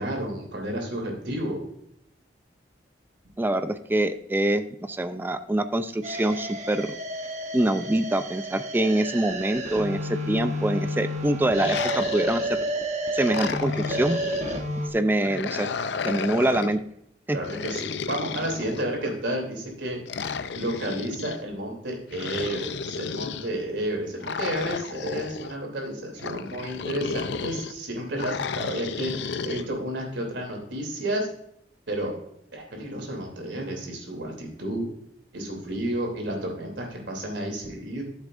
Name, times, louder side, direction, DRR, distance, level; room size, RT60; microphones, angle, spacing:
voice 1, 0.0-1.6 17.3-20.0 20.5-31.3 31.9-32.1 32.5-34.9 35.3-38.0, right 1 dB, 85° right, 1 dB, 2.9 m, -31 dB
voice 2, 3.4-6.9 7.5-12.6 13.1-14.2 14.9-15.7 16.0-16.8 17.3-17.4, right 1 dB, 10° right, 10 dB, 0.3 m, -25 dB
sound 1, 6.0-14.9, right 1 dB, 40° right, 1.0 m, -31 dB
sound 2, 11.5-12.7 13.2-14.6 15.2-16.8 17.4-19.2 20.1-21.4 22.1-23.5 24.2-25.5 26.2-27.7 28.2-29.6, left 5 dB, 70° left, 0.5 m, -33 dB
13.0 x 7.2 x 2.5 m, 0.75 s
head